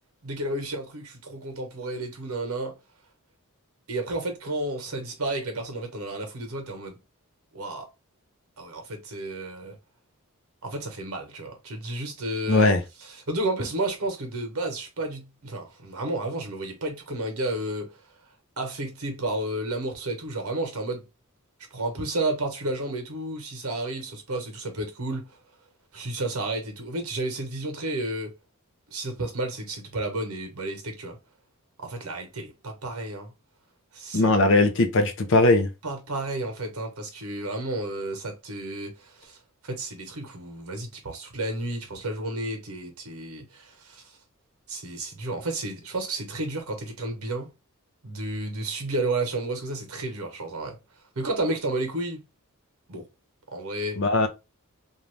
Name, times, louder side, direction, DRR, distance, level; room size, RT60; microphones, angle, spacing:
voice 1, 0.2-2.7 3.9-7.0 7.5-7.9 8.6-9.8 10.6-12.7 13.1-17.9 18.6-21.1 21.7-25.3 25.9-28.3 28.9-31.2 31.8-33.3 33.9-34.3 35.8-39.4 39.6-44.1 44.7-47.5 48.0-50.8 51.2-52.2 52.9-53.1 53.5-54.0, right 2 dB, 80° right, 1.0 m, -31 dB
voice 2, 12.5-12.8 34.1-35.7 54.0-54.3, left 2 dB, 60° left, 0.6 m, -19 dB
2.6 x 2.3 x 3.1 m
head